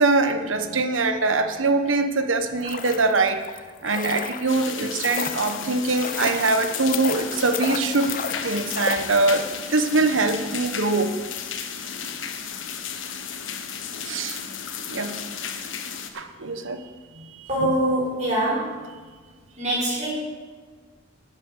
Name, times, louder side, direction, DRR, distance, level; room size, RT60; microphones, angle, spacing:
voice 1, 0.0-3.4 3.8-11.2 14.1-14.4 14.9-15.2 16.1-16.8 17.2-17.5, right 3 dB, 85° right, 8 dB, 1.1 m, -23 dB
sound 1, 2.4-9.6 9.9-10.0, left 6 dB, 45° left, 0.7 m, -33 dB
sound 2, 4.5-16.1, left 7 dB, 80° left, 1.2 m, -34 dB
voice 2, 17.5-18.8 19.6-20.1, right 1 dB, 40° right, -6 dB, 4.6 m, -24 dB
11.0 x 8.4 x 8.2 m, 1.5 s
head